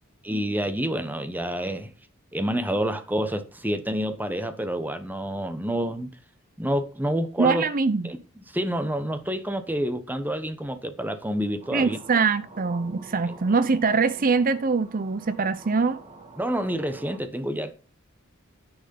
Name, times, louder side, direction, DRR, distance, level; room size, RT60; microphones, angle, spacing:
voice 1, 0.2-1.9 2.3-6.1 6.6-7.7 8.0-8.2 8.5-12.0 16.4-17.7, equal, 10° right, 1.0 m, -28 dB
voice 2, 7.4-8.1 11.7-16.0, right 4 dB, 40° right, 0.6 m, -23 dB
sound 1, 11.6-17.2, right 3 dB, 25° right, 1.7 m, -46 dB
10.5 x 6.3 x 5.4 m
head